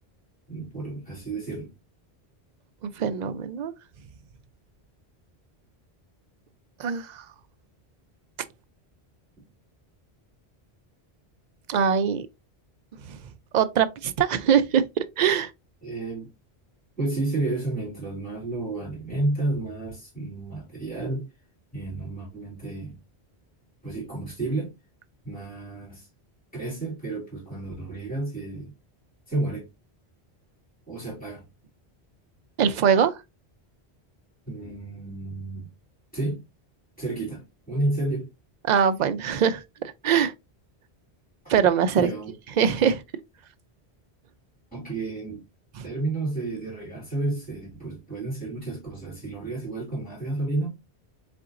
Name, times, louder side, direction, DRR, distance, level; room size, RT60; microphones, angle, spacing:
voice 1, 0.5-1.7 15.8-16.3 17.0-21.3 21.7-23.0 23.8-24.7 25.2-26.1 26.5-28.7 29.3-29.7 30.9-31.4 34.5-35.7 36.1-36.4 37.0-38.3 42.0-42.3 44.7-45.4 45.8-50.7, right 2 dB, 10° left, 2.6 m, -31 dB
voice 2, 2.8-3.7 6.8-7.2 11.7-12.3 13.1-13.2 13.5-14.8 15.2-15.5 32.6-33.2 38.7-39.6 40.0-40.3 41.5-42.1 42.6-43.0 45.8-45.9, right 7 dB, 55° right, 0.5 m, -22 dB
4.3 x 3.8 x 2.4 m
omnidirectional pair, 1.1 m